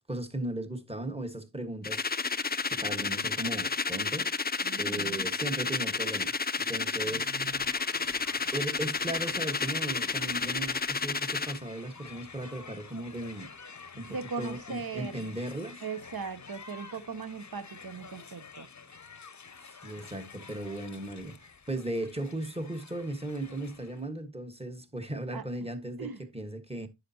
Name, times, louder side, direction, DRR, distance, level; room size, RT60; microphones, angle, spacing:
voice 1, 0.0-2.3 2.7-4.3 4.8-7.3 8.5-13.5 14.0-15.8 19.8-26.9, right 1 dB, 10° right, 1.4 m, -37 dB
sound 1, 1.8-11.6, left 4 dB, 20° left, 0.4 m, -31 dB
voice 2, 4.6-5.2 7.0-7.5 14.1-15.3 15.8-18.7 25.3-25.4 26.0-26.2, right 5 dB, 50° right, 0.9 m, -39 dB
Crowd, 7.4-24.1, left 5 dB, 35° left, 0.8 m, -49 dB
9.9 x 6.6 x 2.8 m
wide cardioid pair, 50°, 47 cm